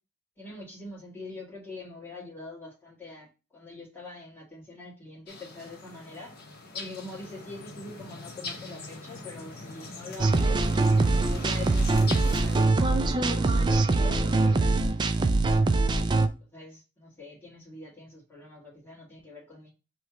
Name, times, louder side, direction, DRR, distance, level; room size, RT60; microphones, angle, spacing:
voice 1, 0.4-3.3 3.5-6.3 6.7-10.6 11.3-15.4 16.0-16.1 16.5-19.7, left 2 dB, 10° left, -5 dB, 1.7 m, -44 dB
sound 1, 5.3-12.7, left 3 dB, 45° left, 0.9 m, -42 dB
sound 2, 10.2-16.3, right 3 dB, 20° right, 0.3 m, -23 dB
3.2 x 3.0 x 4.7 m, 0.30 s
head